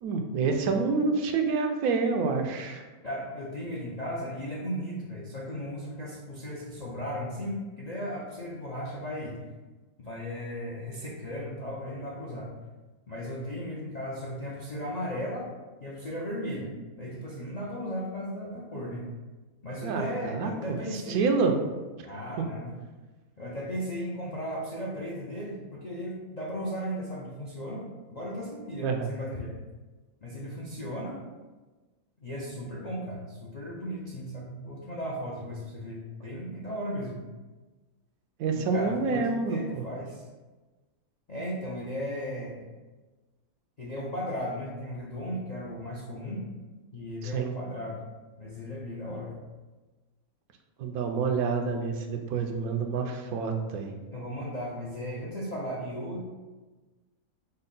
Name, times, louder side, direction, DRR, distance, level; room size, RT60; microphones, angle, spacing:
voice 1, 0.0-2.8 19.8-21.5 28.8-29.1 38.4-39.8 47.2-47.6 50.8-53.9, right 4 dB, 90° right, 4 dB, 1.1 m, -28 dB
voice 2, 3.0-9.4 10.0-12.5 13.1-15.5 15.8-19.0 19.6-21.3 22.0-22.7 23.4-29.6 30.2-31.2 32.2-37.2 38.5-40.2 41.3-42.7 43.8-46.5 46.9-48.0 48.4-49.3 54.1-56.3, equal, 70° left, -5 dB, 0.3 m, -36 dB
5.3 x 2.1 x 3.8 m, 1.2 s
omnidirectional pair, 1.5 m